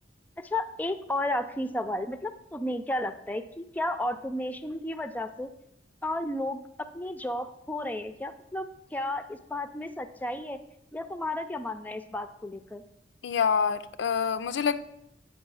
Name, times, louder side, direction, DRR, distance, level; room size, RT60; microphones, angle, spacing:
voice 1, 0.4-5.5 6.0-6.6 6.9-10.6 10.9-12.8, left 1 dB, 10° left, 10 dB, 0.4 m, -33 dB
voice 2, 13.2-14.8, left 6 dB, 75° left, 12 dB, 0.4 m, -26 dB
8.2 x 5.2 x 6.2 m, 0.79 s
head